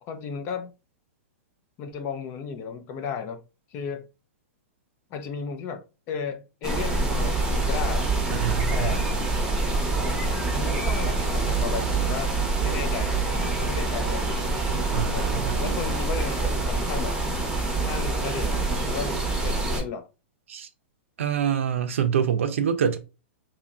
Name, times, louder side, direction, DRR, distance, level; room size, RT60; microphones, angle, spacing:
voice 1, 0.0-0.7 1.8-3.4 3.7-4.1 5.1-8.1 8.7-9.0 10.5-14.3 15.1-15.3 15.6-17.2 17.8-20.1, left 6 dB, 35° left, 0.5 m, -34 dB
sound 1, 6.6-19.8, right 3 dB, 10° right, 0.8 m, -26 dB
voice 2, 8.3-9.0 14.9-15.8 20.5-20.7 21.2-23.0, right 8 dB, 80° right, 0.6 m, -26 dB
2.8 x 2.7 x 3.6 m
hypercardioid pair, 140°, 7 cm